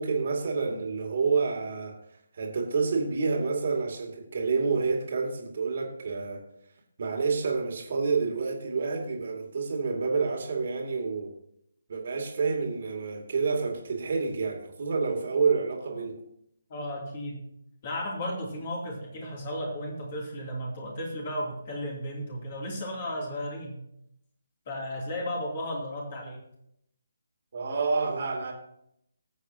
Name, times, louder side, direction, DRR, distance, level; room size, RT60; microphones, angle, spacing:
voice 1, 0.0-2.0 2.3-6.4 7.0-11.3 11.9-16.2 27.5-28.5, right 4 dB, 45° right, 2 dB, 2.3 m, -28 dB
voice 2, 16.7-17.4 17.8-23.9 24.7-26.4, equal, 35° left, -1 dB, 2.8 m, -34 dB
19.5 x 8.1 x 2.9 m, 0.75 s
figure-of-eight pair, 145°, 0 cm